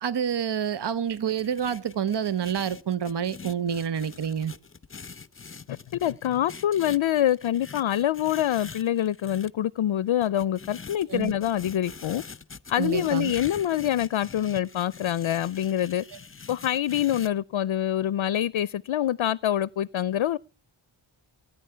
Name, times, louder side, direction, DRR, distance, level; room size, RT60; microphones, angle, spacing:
voice 1, 0.0-4.5 11.1-11.3 12.7-13.3, right 8 dB, 55° right, 0.8 m, -28 dB
sound 1, 1.1-9.5 10.2-17.3, left 5 dB, 25° left, 0.8 m, -44 dB
voice 2, 5.7-12.2 12.7-16.0 16.5-20.4, left 11 dB, 70° left, 0.6 m, -25 dB
18.0 x 10.0 x 5.6 m
cardioid pair, 55°, 50 cm